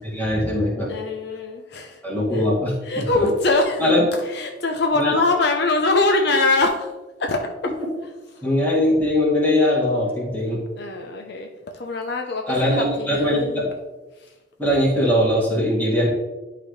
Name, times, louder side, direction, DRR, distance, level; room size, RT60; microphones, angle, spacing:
voice 1, 0.0-0.9 2.0-3.1 3.8-4.1 5.0-5.1 8.4-10.6 12.5-13.7 14.6-16.1, left 1 dB, 10° left, -6 dB, 2.3 m, -21 dB
voice 2, 0.9-2.0 2.3-2.4 2.8-3.8 4.2-6.9 7.2-7.5 10.8-11.5 11.7-13.7 14.2-14.3, left 2 dB, 65° left, 3 dB, 0.7 m, -23 dB
11.5 x 4.0 x 3.2 m, 1.2 s
head